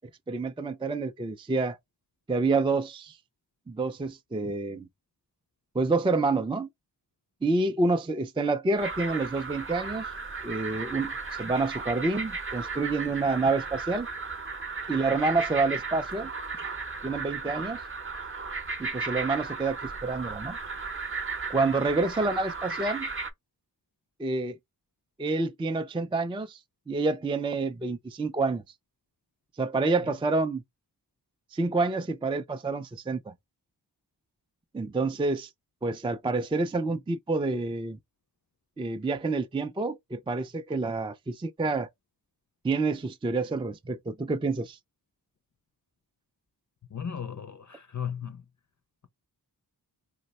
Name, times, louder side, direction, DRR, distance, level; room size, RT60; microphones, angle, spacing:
voice 1, 0.3-1.8 2.3-3.2 3.7-4.9 5.7-6.7 7.4-10.1 10.4-14.1 14.9-16.3 17.0-17.8 18.8-20.6 21.5-23.1 24.2-24.6 25.2-26.6 26.9-28.6 29.6-30.6 31.5-33.3 34.7-35.5 35.8-38.0 38.8-41.9 42.6-44.8, right 3 dB, 15° right, 0.3 m, -28 dB
sound 1, 8.8-23.3, right 4 dB, 30° right, 0.7 m, -35 dB
voice 2, 46.9-48.4, left 8 dB, 45° left, 0.5 m, -35 dB
2.8 x 2.1 x 4.0 m
wide cardioid pair, 50°, 42 cm